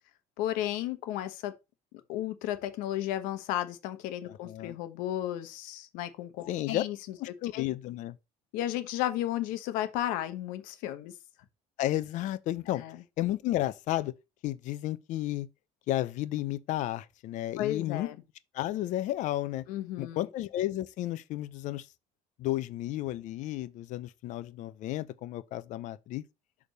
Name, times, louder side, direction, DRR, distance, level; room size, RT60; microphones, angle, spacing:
voice 1, 0.4-1.5 2.1-7.6 8.5-11.1 12.8-13.0 17.6-18.2 19.7-20.3, left 13 dB, 90° left, 1.1 m, -34 dB
voice 2, 4.5-4.8 6.5-6.8 7.2-8.1 11.8-12.8 13.2-14.1 14.4-15.5 15.9-18.1 18.5-19.6 20.0-21.8 22.4-26.2, left 14 dB, 65° left, 0.7 m, -32 dB
6.4 x 3.6 x 5.3 m
cardioid pair, 130°, 14 cm